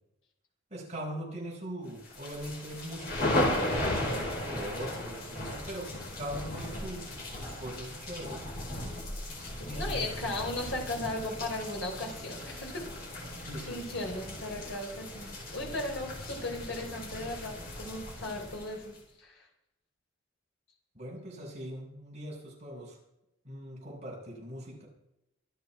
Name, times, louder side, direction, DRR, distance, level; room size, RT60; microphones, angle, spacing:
voice 1, 0.7-8.5 8.9-9.0 9.7-10.3 13.5-14.0 20.9-23.0 23.4-24.9, equal, 30° right, -3 dB, 5.7 m, -41 dB
sound 1, 2.0-19.0, left 1 dB, 45° left, 4.9 m, -36 dB
voice 2, 9.4-12.9 13.3-19.5, left 2 dB, 65° left, 1 dB, 3.6 m, -37 dB
24.5 x 9.1 x 4.6 m, 0.85 s
head